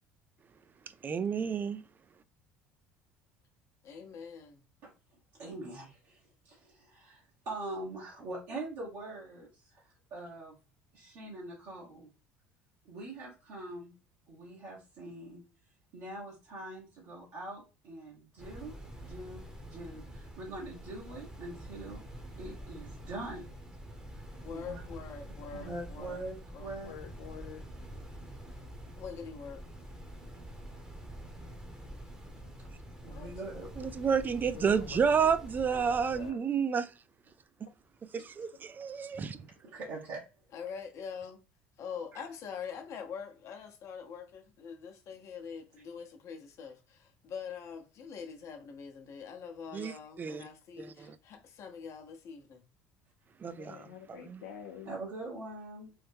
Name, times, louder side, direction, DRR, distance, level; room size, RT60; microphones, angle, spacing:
voice 1, 1.0-1.8 33.8-36.9 38.1-39.4 49.7-50.5 50.8-51.2 53.4-54.4, right 6 dB, 30° right, 0.3 m, -30 dB
voice 2, 3.8-4.6 24.4-26.2 26.5-26.8 29.0-29.6 33.1-33.3 40.5-41.4 41.8-52.6, left 6 dB, 55° left, 0.8 m, -44 dB
voice 3, 5.3-10.5 10.9-12.1 12.8-13.9 14.3-15.4 15.9-18.7 19.0-22.0 22.4-23.5 24.1-24.8 25.2-26.9 33.0-33.7 39.4-40.2 49.7-49.9 54.8-55.9, right 2 dB, 65° right, 1.1 m, -43 dB
sound 1, 18.4-36.3, equal, 10° right, 0.8 m, -46 dB
voice 4, 26.8-27.6 33.5-33.9 34.5-35.3 35.7-36.4 38.1-38.2 53.4-54.9, left 9 dB, 85° left, 0.4 m, -48 dB
3.1 x 2.1 x 3.3 m
hypercardioid pair, 75°, 6 cm